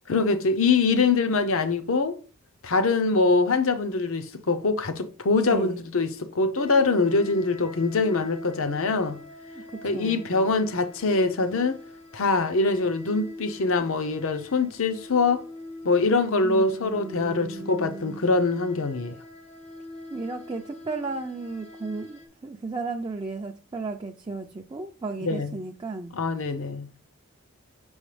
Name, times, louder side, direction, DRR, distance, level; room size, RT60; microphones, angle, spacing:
voice 1, 0.1-2.2 2.6-9.2 9.8-11.8 12.1-15.5 15.8-19.2 25.2-25.6 26.1-26.9, left 3 dB, 60° left, 0.7 m, -24 dB
voice 2, 5.5-5.8 9.7-10.2 16.4-18.2 20.1-26.1, right 3 dB, 20° right, 0.4 m, -34 dB
sound 1, 6.6-22.3, left 2 dB, 80° left, 2.2 m, -43 dB
7.1 x 6.0 x 3.3 m
head